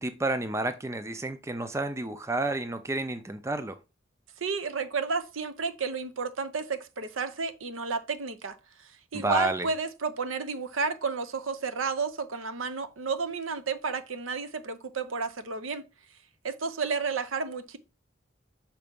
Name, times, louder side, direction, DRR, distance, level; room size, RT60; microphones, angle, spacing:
voice 1, 0.0-3.8 9.1-9.7, right 2 dB, 15° right, 0.4 m, -30 dB
voice 2, 4.4-8.6 9.1-15.9 16.4-17.8, right 4 dB, 85° right, 0.8 m, -31 dB
5.9 x 4.2 x 5.2 m
head